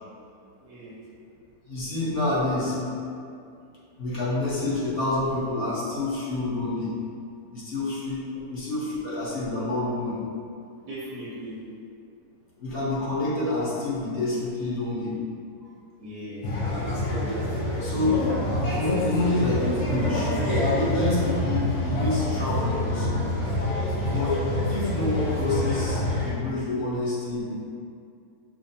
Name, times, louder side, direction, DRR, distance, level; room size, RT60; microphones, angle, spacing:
voice 1, 0.6-1.0 8.3-8.5 10.8-11.6 15.6-15.7 16.0-16.9, equal, 85° right, -7 dB, 1.2 m, -39 dB
voice 2, 1.7-2.8 4.0-6.9 7.5-10.2 12.6-15.1 17.8-18.2 18.7-20.3 20.6-23.3 24.1-24.4 24.7-27.6, left 2 dB, 45° left, -9 dB, 0.9 m, -28 dB
sound 1, 16.4-26.3, left 1 dB, 80° left, 1.5 m, -26 dB
5.8 x 2.0 x 2.7 m, 2.4 s
omnidirectional pair, 1.6 m